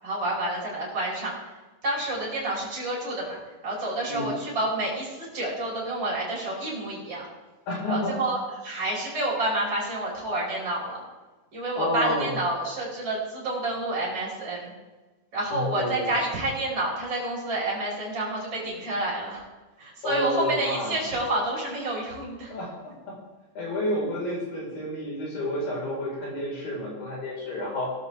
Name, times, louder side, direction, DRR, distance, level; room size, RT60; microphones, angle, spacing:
voice 1, 0.0-1.3 1.8-7.2 7.9-11.0 11.5-14.7 15.3-19.4 19.8-22.5, right 1 dB, 30° right, -6 dB, 5.6 m, -29 dB
voice 2, 7.7-8.2 11.7-12.3 15.5-16.1 20.0-21.0 22.5-22.7 23.5-27.9, left 1 dB, 80° left, -4 dB, 6.7 m, -29 dB
17.5 x 13.0 x 3.6 m, 1.2 s
omnidirectional pair, 4.0 m